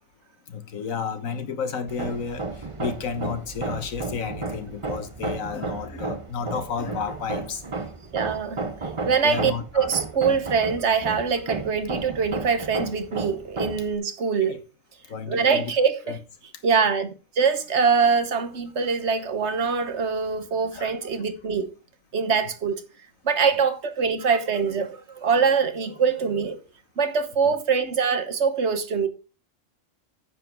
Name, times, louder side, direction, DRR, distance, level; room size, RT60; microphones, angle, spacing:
voice 1, 0.5-2.4 2.8-7.6 9.2-9.9 14.5-14.6 15.1-15.7 16.1-16.2 20.7-20.9 27.4-27.5, left 6 dB, 80° left, 1.7 m, -31 dB
Hammer, 1.9-13.9, right 3 dB, 25° right, 0.9 m, -33 dB
voice 2, 8.1-14.6 15.3-16.2 16.6-21.7 22.1-22.8 23.2-26.6 27.0-29.1, right 5 dB, 60° right, 1.3 m, -23 dB
9.3 x 7.4 x 4.6 m
omnidirectional pair, 1.4 m